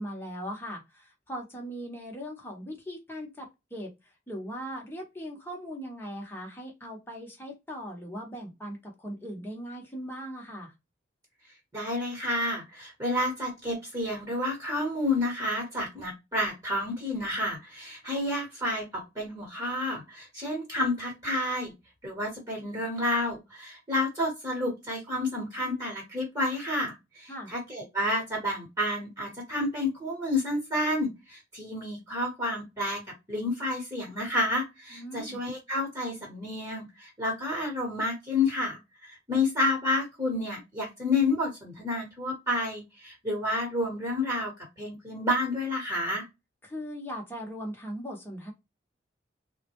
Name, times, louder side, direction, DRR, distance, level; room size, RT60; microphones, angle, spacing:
voice 1, 0.0-3.9 4.3-10.7 27.3-27.5 34.9-35.4 46.6-48.5, equal, 10° left, -1 dB, 1.0 m, -39 dB
voice 2, 11.7-21.7 22.0-33.0 33.3-44.5 44.8-46.2, left 1 dB, 20° right, -1 dB, 1.2 m, -30 dB
3.6 x 2.2 x 2.9 m, 0.23 s
head